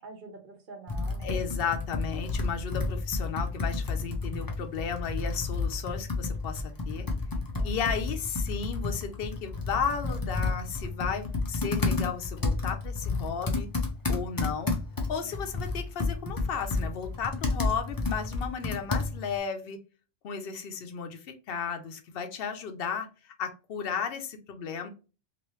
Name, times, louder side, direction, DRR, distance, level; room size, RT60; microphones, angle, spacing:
voice 1, 0.0-1.4 7.6-8.0 15.2-15.6, right 3 dB, 50° right, 3 dB, 1.0 m, -47 dB
Computer keyboard, 0.9-19.4, left 3 dB, 30° left, 0.4 m, -31 dB
voice 2, 1.2-7.1 7.6-13.7 14.1-14.8 15.1-19.8 20.2-24.9, left 6 dB, 65° left, 6 dB, 0.8 m, -34 dB
3.0 x 2.6 x 3.0 m, 0.33 s
omnidirectional pair, 1.1 m